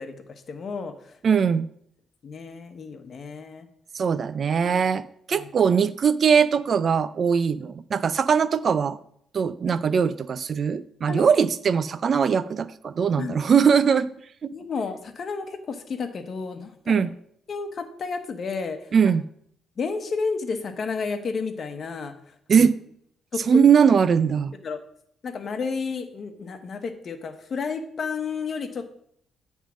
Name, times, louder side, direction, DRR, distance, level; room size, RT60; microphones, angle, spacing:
voice 1, 0.0-1.2 2.2-3.7 4.6-4.7 5.3-5.5 9.9-10.0 11.1-11.4 13.2-13.4 14.5-17.0 17.5-18.9 19.8-22.7 23.3-23.6 24.6-24.8 25.2-28.9, left 5 dB, 50° left, 7 dB, 1.1 m, -32 dB
voice 2, 1.2-1.7 3.9-9.0 9.3-14.1 14.4-14.5 16.9-17.1 18.9-19.2 22.5-22.8 23.5-24.5, right 6 dB, 50° right, 16 dB, 0.4 m, -21 dB
8.9 x 3.6 x 6.2 m, 0.66 s
cardioid pair, 90°, 0 cm